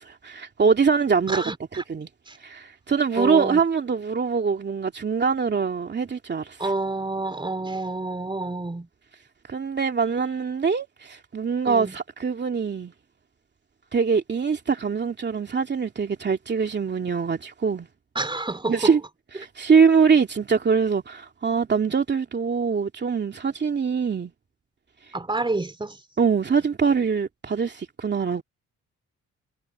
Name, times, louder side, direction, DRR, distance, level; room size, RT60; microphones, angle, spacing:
voice 1, 0.0-1.4 1.9-2.1 2.4-6.6 9.5-12.9 13.9-17.9 18.7-19.0 19.4-24.3 26.2-28.4, right 5 dB, 35° right, 2.5 m, -23 dB
voice 2, 1.3-1.8 2.3-2.4 3.2-3.6 6.6-8.9 11.6-12.0 18.2-19.0 25.1-26.0, right 2 dB, 15° right, 3.3 m, -28 dB
cardioid pair, 90°, 30 cm